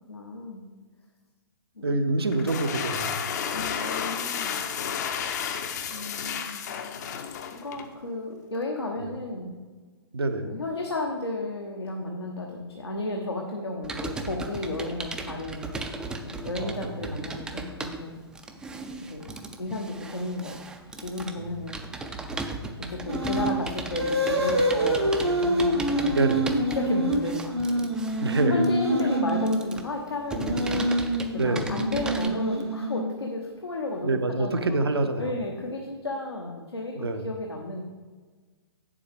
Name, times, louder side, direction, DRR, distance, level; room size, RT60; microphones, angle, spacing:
voice 1, 0.1-0.6 1.8-2.0 3.5-4.6 5.9-7.1 7.5-9.6 10.4-15.7 16.1-18.2 19.1-19.3 19.6-20.6 21.0-21.8 22.9-26.2 26.7-27.9 28.5-30.8 31.3-34.8 35.2-37.8, left 2 dB, 80° left, 0 dB, 1.0 m, -33 dB
voice 2, 1.8-3.4 10.1-10.6 16.6-17.2 21.4-21.5 26.1-26.6 28.2-28.6 31.4-31.7 34.0-35.3 37.0-37.3, right 2 dB, 70° right, 8 dB, 0.8 m, -26 dB
sound 1, 2.3-7.9, left 7 dB, 40° left, 0.7 m, -32 dB
Computer keyboard, 13.8-32.3, right 3 dB, 5° right, 0.4 m, -37 dB
sound 2, 23.1-23.6 23.9-29.6 30.3-33.3, right 1 dB, 85° right, 1.4 m, -26 dB
8.6 x 7.2 x 3.5 m, 1.4 s
figure-of-eight pair, 115°, 13 cm